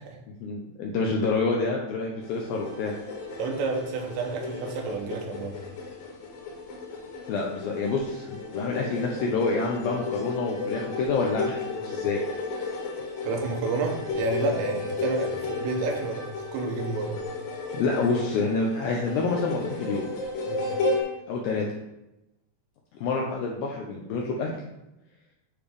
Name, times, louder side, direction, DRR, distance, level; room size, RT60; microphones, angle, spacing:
voice 1, 0.3-2.9 7.3-12.2 17.7-20.0 21.3-21.7 22.9-24.5, left 3 dB, 80° left, -1 dB, 2.1 m, -27 dB
sound 1, 2.2-21.0, left 3 dB, 60° left, 2.9 m, -33 dB
voice 2, 3.4-5.6 13.3-17.2 20.5-20.6, right 4 dB, 85° right, 2 dB, 3.4 m, -30 dB
10.0 x 3.4 x 5.0 m, 0.90 s
omnidirectional pair, 5.1 m